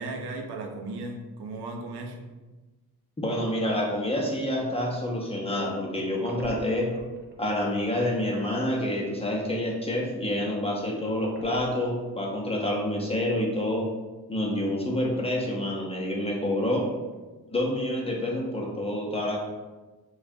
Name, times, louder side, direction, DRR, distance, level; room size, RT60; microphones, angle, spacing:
voice 1, 0.0-2.3, right 2 dB, 85° right, 3 dB, 0.7 m, -36 dB
voice 2, 3.2-6.9 7.4-13.8 14.3-16.9 17.5-19.4, left 1 dB, 15° left, -2 dB, 0.6 m, -28 dB
sound 1, 6.2-7.9 8.4-8.5 11.1-12.3 12.6-12.7 16.2-16.6 17.0-17.1, right 1 dB, 30° right, 0.6 m, -45 dB
6.6 x 2.4 x 2.7 m, 1.2 s
wide cardioid pair, 160°, 39 cm